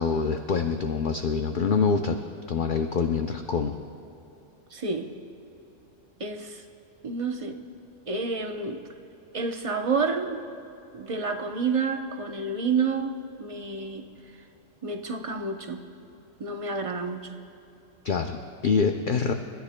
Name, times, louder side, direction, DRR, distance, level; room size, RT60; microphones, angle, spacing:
voice 1, 0.0-2.2 2.5-3.8 18.0-19.3, left 5 dB, 55° left, 5 dB, 0.6 m, -25 dB
voice 2, 4.7-5.1 6.2-6.6 7.0-7.6 8.1-8.8 9.3-10.4 10.9-14.1 14.8-15.8 16.4-17.3, right 4 dB, 30° right, 4 dB, 0.7 m, -29 dB
29.0 x 14.0 x 2.2 m, 2.9 s
omnidirectional pair, 1.3 m